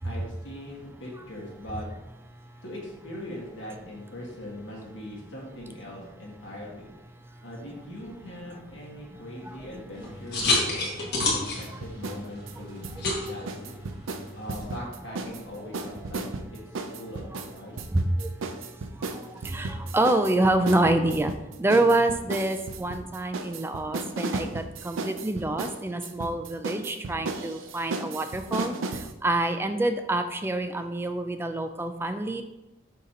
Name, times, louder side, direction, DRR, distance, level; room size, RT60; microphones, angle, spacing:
voice 1, 0.0-1.9 2.6-6.9 7.4-13.7 14.4-16.3 16.9-17.8, left 1 dB, 70° left, -3 dB, 1.8 m, -41 dB
voice 2, 9.1-9.6 10.0-10.1 12.6-12.7 17.9-18.3 19.1-21.3 21.6-32.4, right 2 dB, 10° right, 8 dB, 0.3 m, -27 dB
sound 1, 9.9-14.6, left 2 dB, 55° left, 1.5 m, -30 dB
sound 2, 11.2-12.2 12.5-15.4 15.7-29.1, right 3 dB, 80° right, 0.5 m, -35 dB
6.5 x 2.9 x 5.1 m, 0.99 s
head